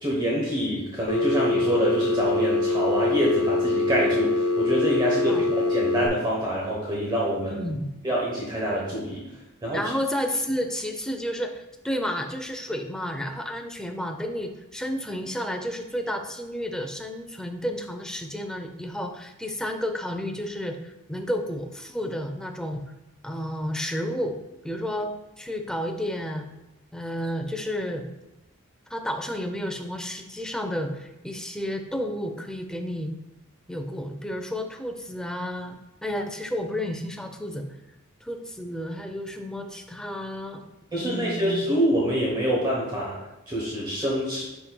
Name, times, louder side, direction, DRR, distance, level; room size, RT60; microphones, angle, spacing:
voice 1, 0.0-7.6 8.0-9.2 9.6-9.8 40.9-44.4, right 1 dB, 20° right, -4 dB, 1.0 m, -26 dB
Telephone, 1.1-6.1, left 3 dB, 80° left, 0.7 m, -24 dB
voice 2, 7.4-7.9 9.7-22.8 23.2-24.4 24.6-26.5 26.9-28.1 28.9-33.1 33.7-37.6 38.2-40.6 41.0-41.7, equal, 5° left, 4 dB, 0.5 m, -31 dB
9.8 x 4.3 x 2.3 m, 0.98 s
head